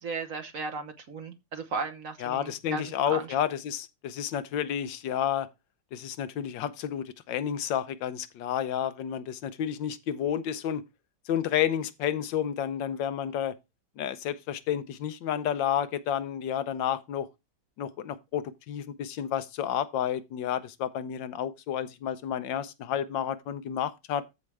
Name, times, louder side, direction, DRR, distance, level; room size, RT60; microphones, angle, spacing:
voice 1, 0.0-3.3, right 4 dB, 50° right, 1.4 m, -36 dB
voice 2, 2.2-5.5 5.9-10.8 11.3-13.5 14.0-17.3 17.8-24.3, left 9 dB, 85° left, 1.4 m, -30 dB
13.5 x 4.8 x 3.3 m
omnidirectional pair, 2.0 m